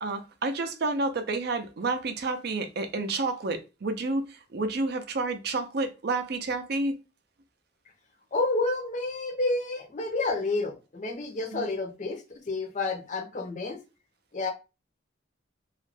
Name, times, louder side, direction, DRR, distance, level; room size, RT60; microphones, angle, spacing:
voice 1, 0.0-7.0 11.5-11.7, right 3 dB, 55° right, 0.4 m, -30 dB
voice 2, 8.3-13.8 14.3-14.5, left 2 dB, 40° left, 0.5 m, -30 dB
2.3 x 2.1 x 3.2 m
head